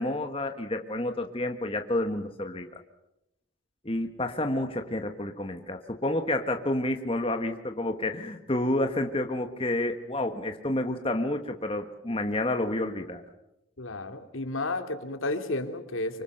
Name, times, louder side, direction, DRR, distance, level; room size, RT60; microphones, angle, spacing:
voice 1, 0.0-2.8 3.8-13.2, left 1 dB, 25° left, 6 dB, 1.4 m, -29 dB
voice 2, 13.8-16.2, left 2 dB, 85° left, 7 dB, 2.6 m, -32 dB
25.5 x 25.0 x 6.6 m, 0.88 s
head